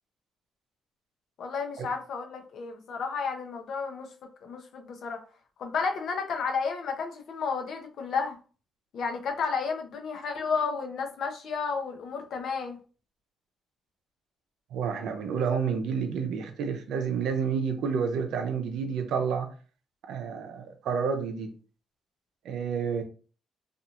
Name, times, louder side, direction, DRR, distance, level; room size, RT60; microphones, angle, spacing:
voice 1, 1.4-4.1 4.4-5.2 5.6-8.4 8.9-12.8, left 5 dB, 65° left, 4 dB, 0.6 m, -32 dB
voice 2, 14.7-19.5 20.1-21.5 22.4-23.0, right 6 dB, 80° right, 6 dB, 0.5 m, -29 dB
2.8 x 2.4 x 2.4 m, 0.38 s
cardioid pair, 90°, 0 cm